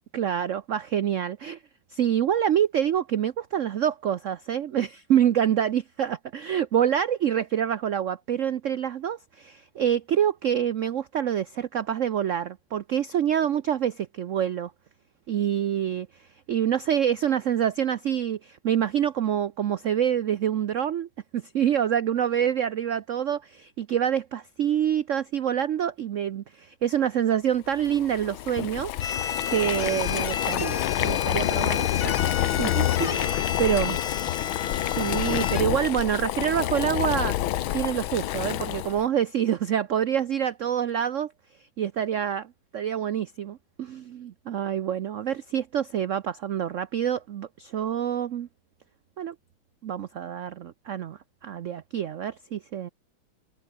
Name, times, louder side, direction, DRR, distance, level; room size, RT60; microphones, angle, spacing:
voice 1, 0.1-1.6 1.9-14.7 15.3-16.1 16.5-28.9 29.5-34.0 35.0-37.4 37.7-41.3 41.8-48.5 49.2-49.3 49.8-52.9, right 9 dB, 80° right, 0.6 m, -26 dB
Boiling, 27.8-39.0, left 14 dB, 85° left, 1.6 m, -28 dB
sound 1, 29.0-35.6, left 7 dB, 55° left, 2.0 m, -32 dB
omnidirectional pair, 2.2 m